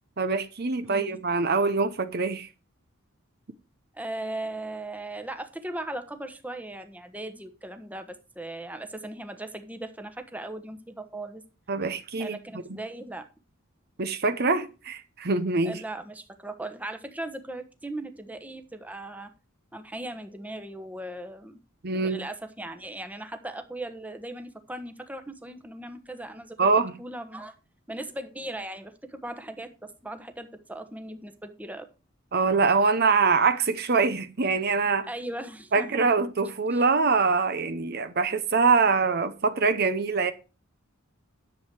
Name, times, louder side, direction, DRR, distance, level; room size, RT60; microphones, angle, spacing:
voice 1, 0.2-2.5 11.7-12.4 14.0-15.8 21.8-22.2 26.6-26.9 32.3-35.1 35.7-40.3, right 4 dB, 50° right, 0.8 m, -24 dB
voice 2, 0.8-1.2 3.9-11.4 12.2-13.2 15.6-19.3 19.7-21.6 21.9-26.7 27.0-27.5 27.9-31.9 35.1-36.1 36.7-36.8, right 1 dB, 5° right, 1.1 m, -38 dB
10.5 x 7.5 x 4.6 m
head